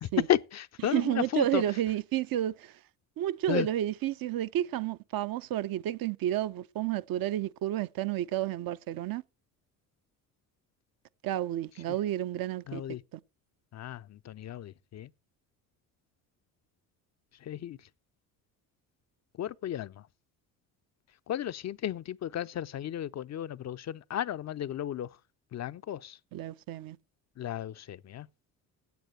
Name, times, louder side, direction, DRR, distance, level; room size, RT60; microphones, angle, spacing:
voice 1, 0.0-1.6 3.5-3.7 12.7-13.0 13.7-15.1 17.4-17.8 19.4-20.1 21.3-25.1 25.5-26.2 27.4-28.3, left 11 dB, 40° left, 0.5 m, -33 dB
voice 2, 0.8-2.8 3.2-9.2 11.2-12.8 13.1-13.2 26.3-27.0, right 13 dB, 55° right, 0.6 m, -31 dB
9.4 x 7.9 x 7.7 m
hypercardioid pair, 60°, 42 cm